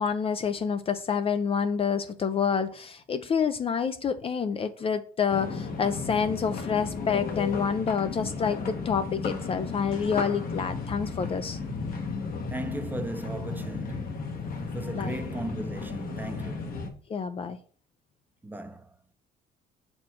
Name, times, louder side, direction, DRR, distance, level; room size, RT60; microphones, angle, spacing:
voice 1, 0.0-11.6 14.9-15.1 17.1-17.6, left 6 dB, 35° left, 0.5 m, -28 dB
sound 1, 5.3-16.9, left 4 dB, 60° left, 1.2 m, -34 dB
voice 2, 12.4-16.9 18.4-19.0, right 2 dB, 10° right, 0.7 m, -37 dB
6.0 x 4.4 x 4.4 m
cardioid pair, 110°, 17 cm